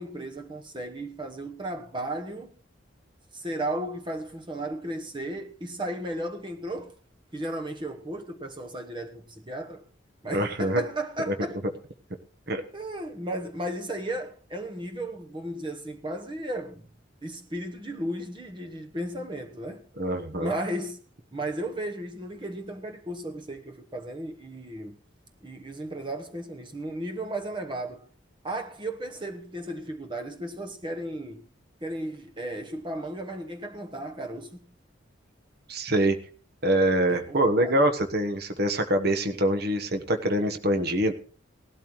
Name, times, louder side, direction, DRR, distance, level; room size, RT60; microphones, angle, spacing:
voice 1, 0.0-2.5 3.3-6.9 7.3-9.8 10.2-11.6 12.7-16.9 17.2-19.8 20.4-21.0 21.3-25.0 25.4-28.1 28.4-31.5 31.8-34.7 37.1-37.9, right 1 dB, 25° right, 1.1 m, -35 dB
voice 2, 10.3-10.8 11.3-11.4 12.5-12.6 20.0-20.5 35.7-36.2 36.6-41.1, right 1 dB, 55° right, 1.2 m, -24 dB
18.0 x 12.5 x 3.1 m
head